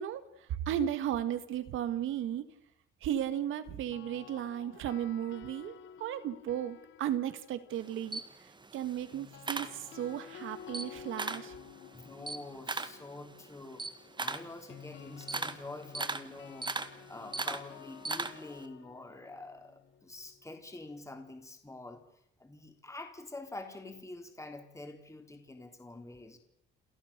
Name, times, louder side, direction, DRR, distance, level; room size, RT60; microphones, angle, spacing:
voice 1, 0.0-2.5 3.0-8.2 8.7-11.5, right 10 dB, 85° right, 12 dB, 1.8 m, -35 dB
sound 1, 3.7-7.9 9.1-21.0, left 9 dB, 70° left, 1.3 m, -52 dB
Camera, 7.7-10.3 10.6-11.5 11.9-18.6, right 3 dB, 25° right, 1.7 m, -38 dB
voice 2, 11.9-13.8 14.2-16.7 17.1-22.0 22.4-26.4, left 2 dB, 15° left, 4 dB, 3.4 m, -46 dB
28.5 x 14.5 x 6.8 m, 0.83 s
cardioid pair, 90°, 20 cm